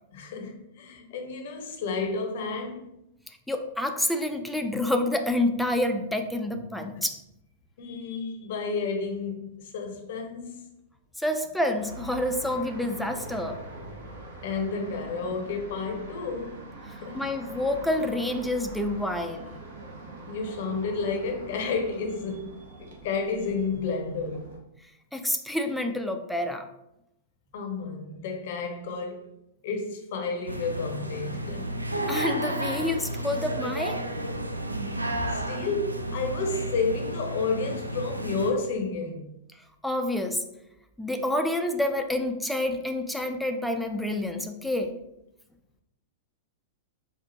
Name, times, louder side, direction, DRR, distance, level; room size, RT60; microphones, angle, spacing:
voice 1, 0.1-2.9 7.8-10.7 14.4-16.7 17.0-17.3 20.3-24.5 27.5-29.3 29.6-31.8 35.1-39.3, left 4 dB, 55° left, 0.6 m, -31 dB
voice 2, 3.5-7.2 11.2-13.6 16.9-19.6 25.1-26.7 32.1-34.0 39.8-40.5 41.0-45.0, left 1 dB, ahead, 0.4 m, -28 dB
sound 1, 11.8-24.6, right 2 dB, 65° right, 0.8 m, -43 dB
sound 2, 30.5-38.5, right 1 dB, 90° right, 0.3 m, -32 dB
4.3 x 2.4 x 2.6 m
figure-of-eight pair, 100°, 0 cm